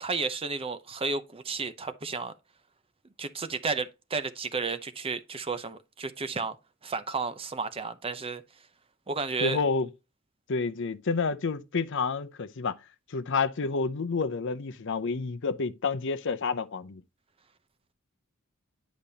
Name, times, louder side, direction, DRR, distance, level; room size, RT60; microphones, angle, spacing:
voice 1, 0.0-2.3 3.2-6.6 6.8-8.4 9.1-9.6, right 4 dB, 25° right, 0.7 m, -32 dB
voice 2, 9.4-9.9 10.5-12.8 13.1-17.0, left 4 dB, 60° left, 0.6 m, -29 dB
10.0 x 5.1 x 2.8 m
head